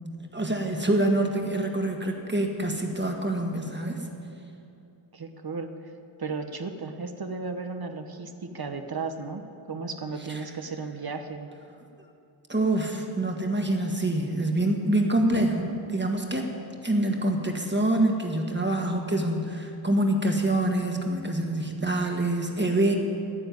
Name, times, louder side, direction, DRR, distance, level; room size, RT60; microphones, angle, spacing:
voice 1, 0.3-4.0 12.5-16.5 16.8-22.9, right 1 dB, 25° right, 2 dB, 1.7 m, -26 dB
voice 2, 5.1-5.9 6.2-11.5, right 4 dB, 50° right, 6 dB, 1.0 m, -35 dB
12.0 x 9.7 x 9.4 m, 2.7 s
wide cardioid pair, 105°, 47 cm